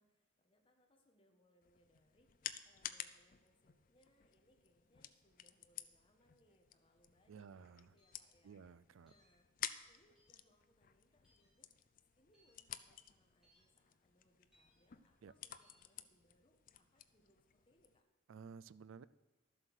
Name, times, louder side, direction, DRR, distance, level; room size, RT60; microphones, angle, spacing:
voice 1, 0.0-8.6 9.0-9.4 9.9-11.9 12.2-18.0, equal, 25° left, 3 dB, 1.4 m, -75 dB
sound 1, 1.6-18.0, left 11 dB, 40° left, 0.4 m, -53 dB
voice 2, 7.3-8.0 8.4-9.1 15.2-15.3 18.3-19.0, right 6 dB, 75° right, 17 dB, 0.4 m, -55 dB
sound 2, 8.0-8.2 9.1-9.3 10.1-10.4 11.2-11.5 12.3-12.5 13.4-13.6 14.5-14.8 15.6-15.8, equal, ahead, 4.7 m, -73 dB
12.5 x 7.7 x 6.3 m, 1.1 s
head